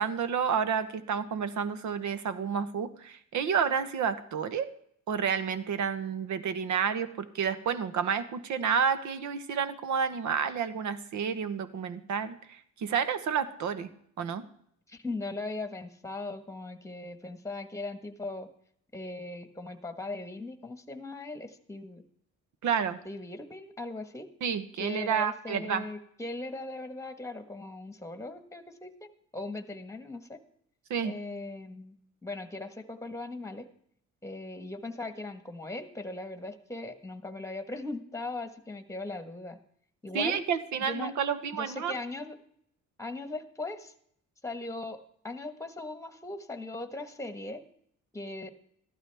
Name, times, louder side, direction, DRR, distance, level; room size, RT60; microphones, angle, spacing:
voice 1, 0.0-4.7 5.1-13.9 14.2-14.4 22.6-23.0 24.4-25.8 30.9-31.1 40.1-42.0, right 7 dB, 75° right, 12 dB, 1.1 m, -30 dB
voice 2, 14.9-18.5 18.9-22.0 23.0-24.3 24.8-29.1 29.3-30.4 31.0-32.0 32.2-33.7 34.2-39.6 40.0-40.4 40.9-41.1 41.5-42.4 43.0-43.9 44.4-45.0 45.2-47.6 48.1-48.5, left 2 dB, 10° left, 9 dB, 1.4 m, -39 dB
14.5 x 12.0 x 3.5 m, 0.66 s
cardioid pair, 90°, 30 cm